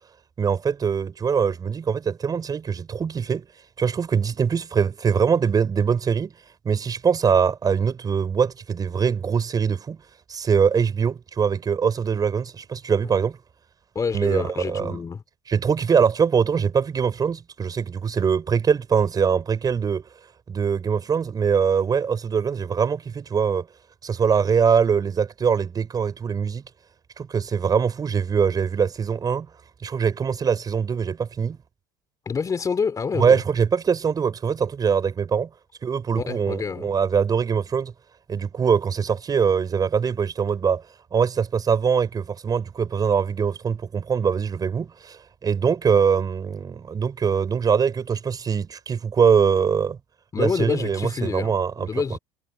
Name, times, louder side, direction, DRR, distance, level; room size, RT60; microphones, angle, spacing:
voice 1, 0.4-3.5 3.8-6.3 6.6-10.0 10.3-13.4 14.1-15.0 15.5-20.0 20.5-23.7 24.0-26.6 27.2-29.5 29.8-31.6 33.2-35.5 35.8-37.9 38.3-40.8 41.1-50.0 50.4-52.0, right 6 dB, 30° right, 6.0 m, -22 dB
voice 2, 13.9-15.2 32.2-33.4 36.2-36.9 50.3-52.2, left 5 dB, 25° left, 2.7 m, -27 dB
supercardioid pair, 90°, 13 cm